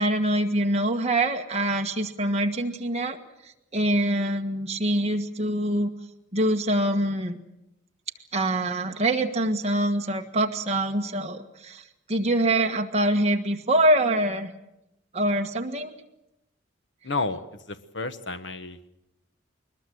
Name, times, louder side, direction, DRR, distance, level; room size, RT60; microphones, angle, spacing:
voice 1, 0.0-3.2 3.7-5.9 6.3-7.4 8.3-14.5 15.1-15.9, right 1 dB, 30° right, 3 dB, 1.6 m, -24 dB
voice 2, 17.0-18.9, left 3 dB, 65° left, 10 dB, 1.3 m, -31 dB
22.0 x 20.5 x 7.8 m, 0.89 s
head